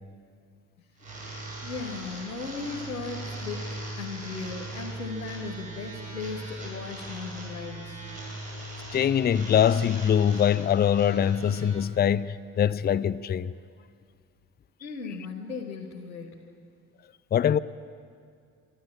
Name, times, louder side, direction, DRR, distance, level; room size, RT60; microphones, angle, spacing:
sound 1, 1.0-11.7, right 1 dB, 80° right, 6.7 m, -39 dB
voice 1, 1.6-8.0 14.8-16.4, left 4 dB, 90° left, 1.2 m, -37 dB
voice 2, 8.9-13.5 17.3-17.6, left 9 dB, 25° left, 0.5 m, -23 dB
26.0 x 12.5 x 8.8 m
figure-of-eight pair, 45°, 43 cm